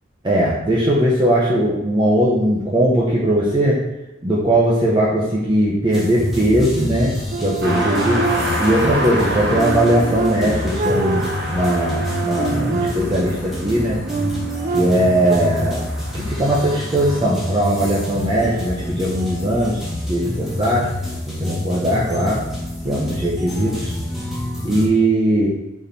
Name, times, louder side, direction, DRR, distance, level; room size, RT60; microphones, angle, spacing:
voice 1, 0.2-3.8 4.2-7.1 7.4-8.2 8.6-14.0 14.7-15.8 16.1-19.8 20.1-20.9 21.3-22.4 22.8-23.9 24.6-25.5, right 1 dB, 25° right, -5 dB, 0.9 m, -19 dB
sound 1, 5.9-24.9, left 1 dB, ahead, 1.8 m, -28 dB
sound 2, 7.3-8.8 9.3-13.4 13.8-15.4, right 3 dB, 40° right, 0.4 m, -26 dB
sound 3, 7.6-17.3, equal, 55° right, 1.4 m, -28 dB
6.3 x 4.4 x 4.3 m, 0.96 s
head